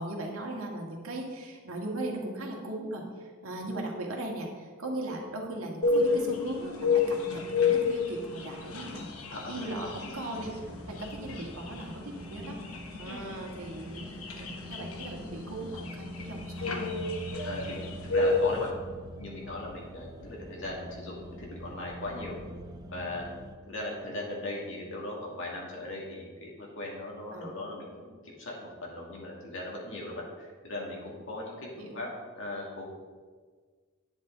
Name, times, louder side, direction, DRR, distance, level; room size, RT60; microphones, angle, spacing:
voice 1, 0.0-9.1 9.5-12.6 13.0-14.1 14.3-17.1 27.3-27.5 31.8-32.0, right 1 dB, 75° right, 0 dB, 1.7 m, -38 dB
sound 1, 5.8-18.7, left 4 dB, 80° left, 1.0 m, -31 dB
voice 2, 9.3-9.9 13.1-13.4 17.4-18.7 19.1-22.3 22.9-23.3 23.7-32.8, left 2 dB, 60° left, -3 dB, 2.4 m, -38 dB
sound 2, 10.3-23.5, equal, 20° right, 0.8 m, -44 dB
9.7 x 8.4 x 4.0 m, 1.5 s
head